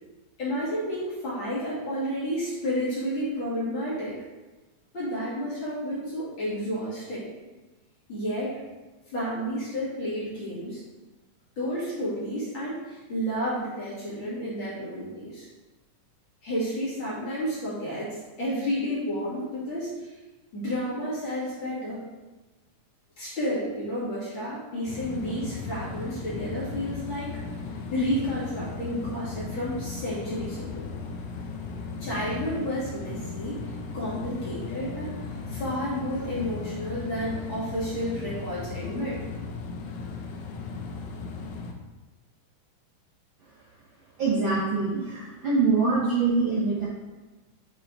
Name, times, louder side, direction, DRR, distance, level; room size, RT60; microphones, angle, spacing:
voice 1, 0.4-4.2 4.9-7.3 8.1-8.5 9.1-10.8 11.6-15.5 16.4-20.1 20.5-22.1 23.2-27.3 27.9-30.9 32.0-33.6 33.9-35.1 35.5-39.2, equal, 40° left, -9 dB, 2.8 m, -31 dB
sound 1, 24.9-41.7, left 4 dB, 75° left, 2.0 m, -36 dB
voice 2, 44.2-46.9, right 4 dB, 85° right, -7 dB, 1.0 m, -24 dB
7.3 x 4.7 x 3.9 m, 1.2 s
omnidirectional pair, 3.8 m